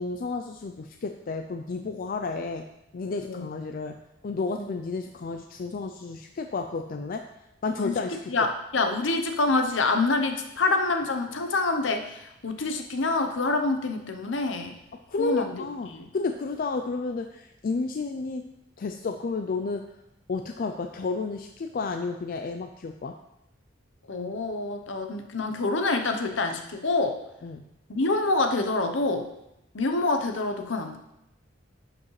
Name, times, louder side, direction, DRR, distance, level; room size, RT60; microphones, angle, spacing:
voice 1, 0.0-2.7 2.9-4.0 4.2-7.2 7.6-8.3 15.1-18.5 18.8-19.8 20.3-23.2 27.4-27.6, left 4 dB, 50° left, 5 dB, 0.4 m, -31 dB
voice 2, 8.3-14.8 15.2-16.1 24.1-27.2 27.9-29.3 29.7-31.0, left 3 dB, 70° left, 6 dB, 0.8 m, -26 dB
11.0 x 5.0 x 3.2 m, 0.87 s
head